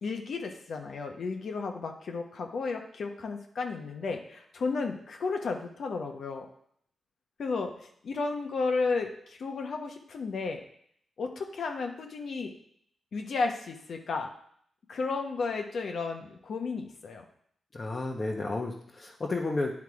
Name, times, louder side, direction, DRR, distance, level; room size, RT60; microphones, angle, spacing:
voice 1, 0.0-6.5 7.4-10.6 11.2-12.5 13.1-14.3 14.9-17.2, left 4 dB, 70° left, 4 dB, 1.0 m, -33 dB
voice 2, 17.7-19.7, left 2 dB, 40° left, -2 dB, 1.0 m, -32 dB
9.5 x 3.6 x 4.8 m, 0.66 s
cardioid pair, 65°, 0 cm